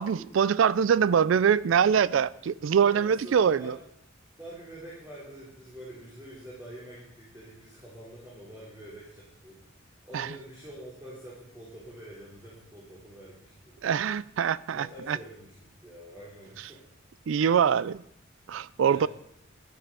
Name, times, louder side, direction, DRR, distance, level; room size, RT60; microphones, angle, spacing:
voice 1, 0.0-3.8 10.1-10.3 13.8-15.2 17.3-18.0 18.5-19.1, right 7 dB, 75° right, 0.4 m, -24 dB
voice 2, 2.8-3.7 4.4-9.6 10.0-13.8 14.7-15.5 15.8-16.8 18.8-19.1, right 1 dB, 15° right, 3.2 m, -46 dB
11.0 x 10.0 x 5.3 m
head